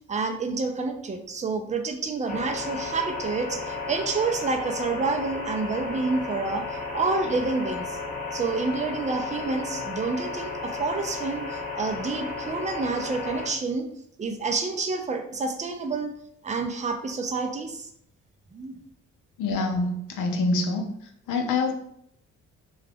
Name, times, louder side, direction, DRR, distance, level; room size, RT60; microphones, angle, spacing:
voice 1, 0.1-6.6 6.9-8.0 8.3-13.9 14.2-16.1 16.4-17.9 18.5-18.8, right 4 dB, 25° right, 5 dB, 0.4 m, -28 dB
sound 1, 2.3-13.5, left 3 dB, 25° left, 0.8 m, -34 dB
voice 2, 19.4-20.9 21.3-21.7, left 3 dB, 80° left, 4 dB, 0.6 m, -25 dB
2.4 x 2.3 x 3.4 m, 0.72 s
cardioid pair, 90°, 30 cm